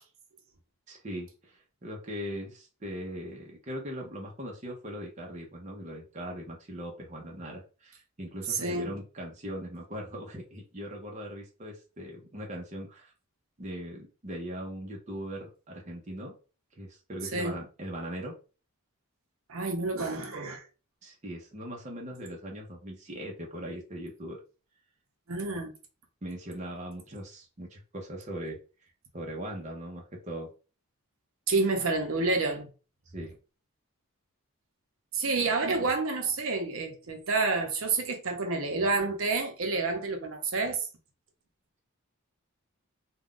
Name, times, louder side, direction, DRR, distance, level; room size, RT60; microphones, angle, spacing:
voice 1, 0.9-13.1 13.6-16.3 16.8-18.3 21.0-24.4 26.2-28.6 29.1-30.5 33.1-33.3, equal, 35° right, 0.6 m, -40 dB
voice 2, 8.5-8.9 17.3-17.6 19.5-20.6 25.3-25.7 31.5-32.7 35.1-40.9, right 3 dB, 70° right, 0.7 m, -29 dB
2.4 x 2.2 x 3.6 m
head